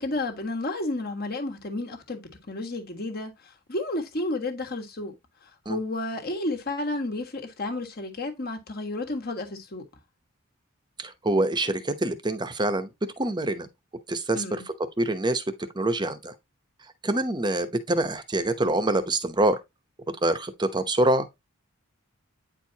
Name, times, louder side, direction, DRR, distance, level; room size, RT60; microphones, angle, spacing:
voice 1, 0.0-3.3 3.7-5.1 5.7-9.8 14.3-14.6, left 2 dB, 45° left, 1.5 m, -31 dB
voice 2, 11.0-12.9 13.2-13.7 14.1-14.6 15.0-15.4 15.7-16.3 17.0-19.6 20.2-21.3, right 2 dB, 20° right, 0.8 m, -25 dB
9.2 x 4.6 x 2.8 m
head